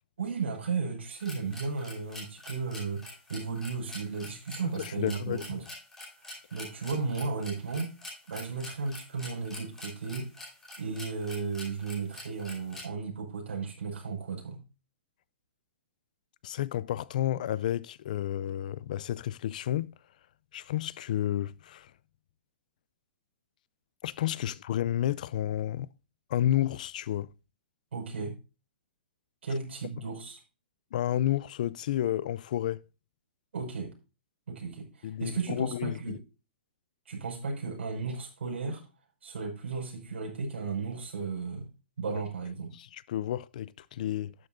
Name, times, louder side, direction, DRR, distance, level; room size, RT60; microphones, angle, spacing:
voice 1, 0.2-5.7 6.2-7.9 8.3-10.3 10.8-14.6 24.4-24.5 27.9-28.4 29.4-30.4 33.5-33.9 34.5-36.2 37.1-38.8 39.2-41.7 42.0-42.7, right 4 dB, 85° right, 5.4 m, -35 dB
sound 1, 1.1-12.9, left 1 dB, 5° left, 4.6 m, -45 dB
voice 2, 4.6-5.4 16.4-19.9 20.5-21.9 24.0-25.9 26.3-27.3 30.9-32.8 35.0-36.2 42.7-44.3, left 12 dB, 45° left, 0.4 m, -31 dB
12.0 x 9.5 x 2.5 m
hypercardioid pair, 170°, 6 cm